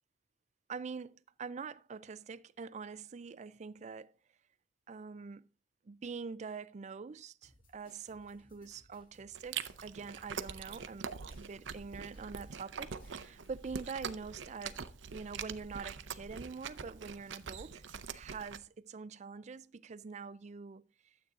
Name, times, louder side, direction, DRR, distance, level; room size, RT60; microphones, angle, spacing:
voice 1, 0.7-4.1 4.9-5.5 5.9-11.1 11.4-14.8 15.1-17.8 18.1-20.8, right 5 dB, 40° right, 0.4 m, -45 dB
sound 1, 7.4-14.3, left 1 dB, 50° left, 5.6 m, -65 dB
sound 2, 9.0-17.9, equal, 85° left, 4.8 m, -68 dB
Chewing mastication, 9.3-18.6, right 6 dB, 80° right, 0.7 m, -44 dB
12.0 x 8.0 x 3.7 m
head